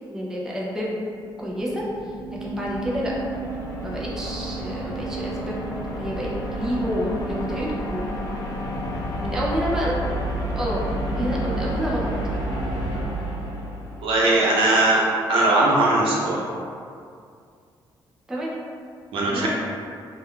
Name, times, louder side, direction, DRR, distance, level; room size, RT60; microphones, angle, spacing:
voice 1, 0.1-0.9 1.4-2.1 2.4-3.1 3.8-5.6 6.0-8.1 9.2-10.0 10.6-12.1 18.3-18.5 19.3-19.5, equal, 5° right, -4 dB, 0.3 m, -29 dB
sound 1, 1.2-14.3, right 1 dB, 50° left, 0.8 m, -30 dB
voice 2, 14.0-15.0 15.3-16.5 19.1-19.5, right 2 dB, 90° right, -5 dB, 0.6 m, -19 dB
2.2 x 2.2 x 3.5 m, 2.3 s
wide cardioid pair, 175°, 9 cm